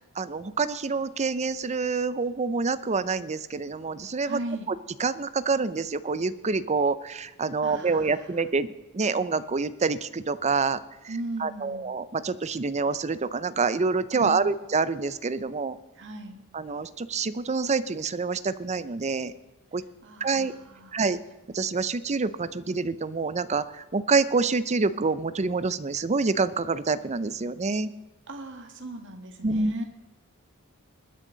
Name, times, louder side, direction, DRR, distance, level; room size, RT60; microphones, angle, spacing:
voice 1, 0.2-4.4 5.0-8.7 8.9-10.8 11.4-15.8 16.5-19.3 19.7-19.8 20.2-20.5 20.9-21.2 21.5-27.9 29.4-29.7, right 4 dB, 30° right, 14 dB, 0.6 m, -27 dB
voice 2, 4.2-4.7 7.6-8.3 11.1-11.9 14.1-14.6 16.0-16.4 20.0-20.9 28.3-29.8, right 2 dB, 60° right, 5 dB, 1.9 m, -38 dB
21.0 x 10.0 x 4.0 m, 1.1 s
head